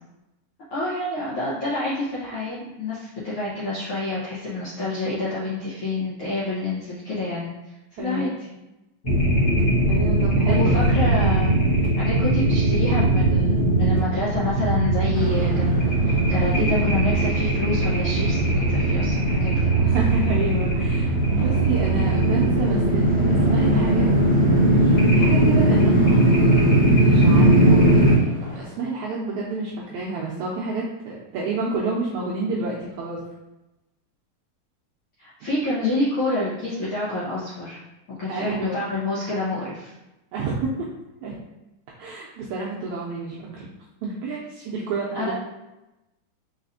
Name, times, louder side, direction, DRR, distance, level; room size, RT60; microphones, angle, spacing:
voice 1, 0.7-8.3 10.5-11.6 12.0-19.8 35.2-37.8 38.2-39.9 45.1-45.3, left 2 dB, 65° left, -10 dB, 1.3 m, -28 dB
voice 2, 8.0-8.4 9.9-10.8 19.8-24.1 25.1-28.3 28.6-33.2 38.3-38.8 40.3-40.9 41.2-41.4 42.0-43.7 44.0-45.3, right 3 dB, 85° right, -4 dB, 1.7 m, -29 dB
sound 1, 9.0-28.2, right 1 dB, 85° left, 0.6 m, -19 dB
sound 2, 15.1-28.7, right 2 dB, 60° right, 1.7 m, -38 dB
4.9 x 4.1 x 2.6 m, 0.98 s
omnidirectional pair, 4.0 m